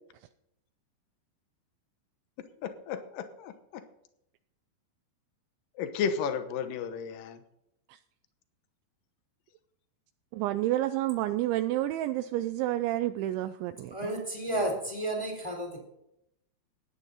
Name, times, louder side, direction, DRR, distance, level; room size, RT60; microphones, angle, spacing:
voice 1, 2.6-3.8 5.8-7.4 14.6-14.7, left 6 dB, 80° left, 9 dB, 2.0 m, -33 dB
voice 2, 10.3-14.1, right 14 dB, 85° right, 10 dB, 2.8 m, -29 dB
voice 3, 13.9-15.8, right 1 dB, 10° left, 1 dB, 2.5 m, -32 dB
16.0 x 10.5 x 4.1 m, 0.79 s
omnidirectional pair, 5.5 m